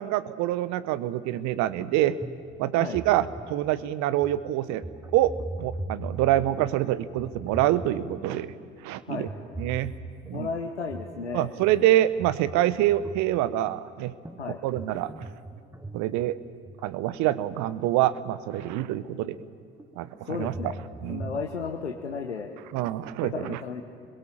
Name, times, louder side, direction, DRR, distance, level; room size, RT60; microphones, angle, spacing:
voice 1, 0.0-2.2 2.6-4.8 5.1-8.5 8.8-9.3 9.6-9.9 10.3-10.5 11.3-14.1 14.6-15.1 15.9-16.4 16.8-19.4 20.0-20.5 21.0-21.3 22.7-23.6, right 13 dB, 60° right, 16 dB, 1.1 m, -26 dB
sound 1, 1.8-1.9 2.2-3.7 4.2-4.4 4.7-6.9 7.2-8.6 9.3-10.4 10.9-11.3 11.6-13.6 14.2-16.9 17.7-17.8 18.3-18.4 19.8-21.4, right 1 dB, 10° right, 1.5 m, -40 dB
voice 2, 10.3-11.5 14.4-14.6 20.3-20.8 21.1-22.5 23.4-23.8, left 5 dB, 90° left, 2 dB, 1.2 m, -33 dB
26.5 x 22.0 x 7.5 m, 2.4 s
figure-of-eight pair, 60°, 33 cm